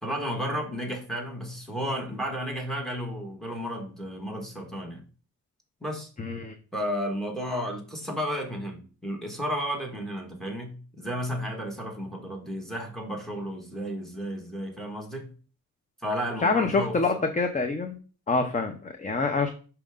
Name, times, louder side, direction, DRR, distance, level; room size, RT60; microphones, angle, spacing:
voice 1, 0.0-5.0 5.8-6.1 6.7-15.3 16.0-17.3, equal, ahead, 1 dB, 1.7 m, -33 dB
voice 2, 6.2-6.6 16.4-18.0 18.3-19.5, left 3 dB, 25° left, 5 dB, 0.6 m, -26 dB
5.7 x 5.2 x 3.7 m, 0.36 s
wide cardioid pair, 135°, 32 cm